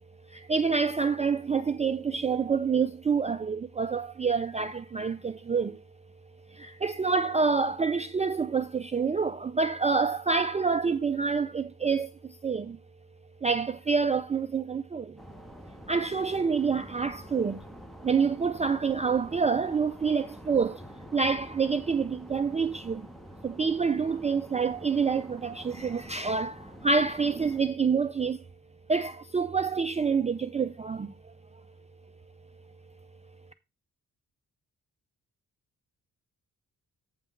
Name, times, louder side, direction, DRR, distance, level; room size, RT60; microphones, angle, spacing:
voice 1, 0.3-5.8 6.5-12.8 13.4-15.2 15.9-17.7 18.0-20.8 21.1-23.1 23.4-28.4 28.9-31.3, right 5 dB, 20° right, 0.4 m, -27 dB
sound 1, 15.2-27.6, equal, ahead, 0.7 m, -48 dB
8.5 x 5.8 x 4.5 m
wide cardioid pair, 160°, 33 cm